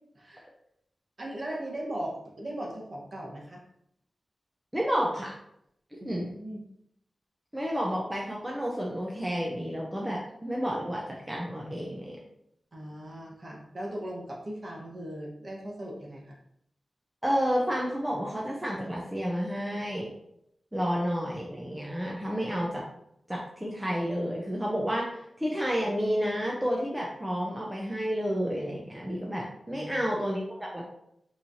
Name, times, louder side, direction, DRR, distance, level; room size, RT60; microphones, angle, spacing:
voice 1, 0.1-0.5 1.2-3.6 6.0-6.6 12.7-16.4 29.7-30.1, right 1 dB, 35° right, -2 dB, 1.2 m, -38 dB
voice 2, 4.7-5.3 6.0-6.3 7.5-12.2 17.2-20.1 20.7-22.8 23.3-25.1 25.4-30.8, equal, 5° right, -3 dB, 0.6 m, -30 dB
5.8 x 3.2 x 2.7 m, 0.76 s
wide cardioid pair, 135°, 0 cm